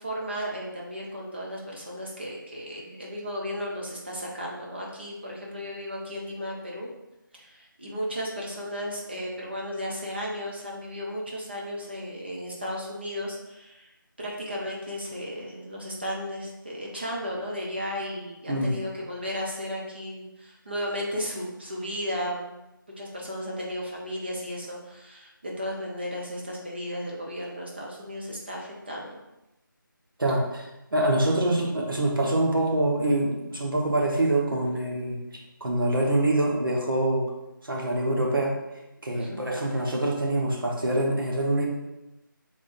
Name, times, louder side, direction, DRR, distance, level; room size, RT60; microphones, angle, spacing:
voice 1, 0.0-6.9 7.4-22.5 23.0-29.2 39.1-39.5, equal, 30° right, -3 dB, 0.7 m, -34 dB
voice 2, 30.2-35.2 35.6-37.2 37.6-38.5 39.0-41.7, right 1 dB, 75° right, -2 dB, 1.2 m, -25 dB
5.0 x 3.7 x 2.6 m, 0.96 s
figure-of-eight pair, 180°, 11 cm